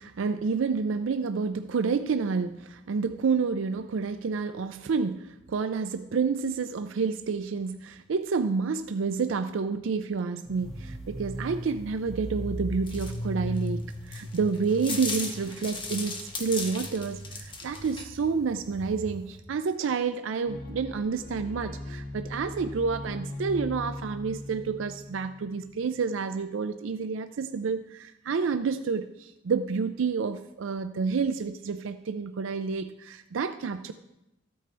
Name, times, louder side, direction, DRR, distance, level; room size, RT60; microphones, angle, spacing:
voice 1, 0.0-33.9, right 5 dB, 75° right, 10 dB, 0.4 m, -29 dB
sound 1, 10.5-19.4, equal, ahead, 2.0 m, -38 dB
sound 2, 12.9-18.0, left 3 dB, 25° left, 1.2 m, -36 dB
sound 3, 20.5-25.8, left 1 dB, 45° left, 1.8 m, -39 dB
14.0 x 8.6 x 3.3 m, 0.93 s
head